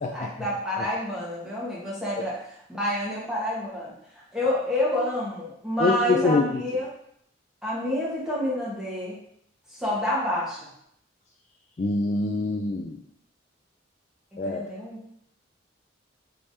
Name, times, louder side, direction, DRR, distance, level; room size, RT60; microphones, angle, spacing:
voice 1, 0.1-2.4 2.7-6.9 7.6-9.2 9.7-10.6 14.4-15.0, left 1 dB, 5° right, -7 dB, 1.2 m, -28 dB
voice 2, 5.8-6.6 11.8-13.0 14.4-14.7, left 3 dB, 35° left, 1 dB, 0.3 m, -25 dB
4.9 x 3.3 x 2.7 m, 0.71 s
head